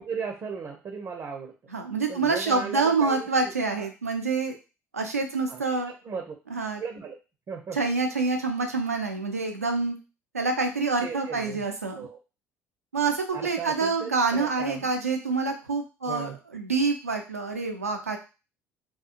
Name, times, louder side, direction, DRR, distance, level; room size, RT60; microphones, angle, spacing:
voice 1, 0.0-1.5 2.1-3.9 5.5-5.6 6.0-6.4 6.8-7.1 7.5-7.8 11.0-11.6 12.0-12.2 13.3-14.8 16.1-16.4, right 5 dB, 35° right, 3 dB, 0.5 m, -36 dB
voice 2, 1.7-4.5 4.9-5.9 6.5-6.8 7.7-10.0 10.3-12.0 12.9-18.2, right 4 dB, 90° right, 4 dB, 0.4 m, -27 dB
2.7 x 2.3 x 2.4 m, 0.31 s
figure-of-eight pair, 60°, 8 cm